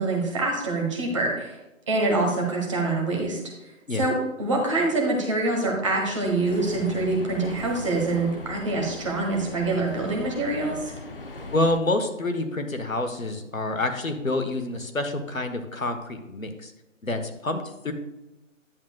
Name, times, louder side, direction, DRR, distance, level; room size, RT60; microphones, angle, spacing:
voice 1, 0.0-1.6 1.9-3.4 3.9-10.9, right 2 dB, 25° right, -1 dB, 1.3 m, -25 dB
sound 1, 5.8-11.8, left 2 dB, 45° left, 0.6 m, -39 dB
voice 2, 11.5-16.7 17.0-17.9, left 2 dB, 85° left, 7 dB, 1.3 m, -27 dB
10.5 x 7.7 x 2.4 m, 0.99 s
figure-of-eight pair, 160°, 40 cm